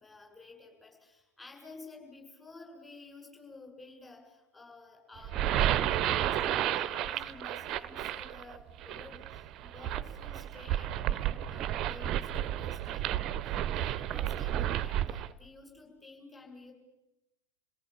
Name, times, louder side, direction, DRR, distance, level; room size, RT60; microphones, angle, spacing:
voice 1, 0.0-16.7, left 3 dB, 10° left, 2 dB, 7.7 m, -52 dB
sound 1, 5.2-15.3, right 11 dB, 35° right, 0.8 m, -32 dB
28.5 x 18.0 x 8.8 m, 0.97 s
figure-of-eight pair, 90°, 0 cm